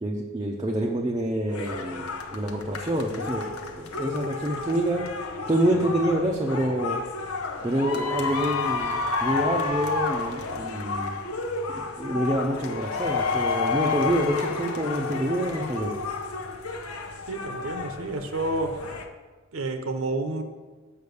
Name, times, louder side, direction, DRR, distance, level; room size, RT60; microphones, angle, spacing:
voice 1, 0.0-5.1 5.5-7.0 7.6-11.2 11.7-15.9, right 1 dB, 20° right, -1 dB, 0.6 m, -27 dB
sound 1, 1.5-19.0, left 4 dB, 85° left, 0.8 m, -31 dB
voice 2, 17.3-18.8 19.5-20.4, right 2 dB, 75° right, 6 dB, 0.9 m, -29 dB
6.9 x 5.6 x 6.6 m, 1.3 s
head